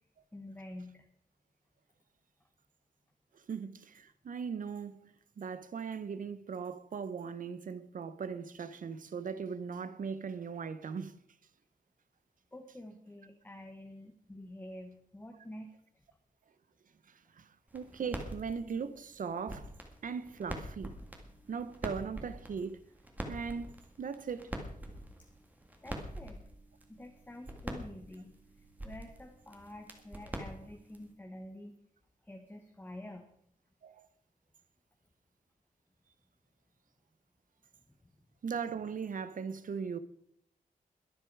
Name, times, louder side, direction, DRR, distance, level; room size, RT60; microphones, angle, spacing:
voice 1, 0.3-1.0 12.5-15.7 25.8-26.4 26.9-28.3 28.8-31.7 32.2-33.3, left 1 dB, 15° left, 1.2 m, -48 dB
voice 2, 3.5-11.1 17.3-19.7 20.0-21.0 21.5-22.8 23.3-23.7 24.0-24.5 33.8-34.1 38.4-40.0, right 6 dB, 70° right, 0.9 m, -39 dB
sound 1, 17.7-31.1, right 1 dB, 10° right, 1.9 m, -45 dB
22.0 x 7.9 x 4.8 m
wide cardioid pair, 180°, 14 cm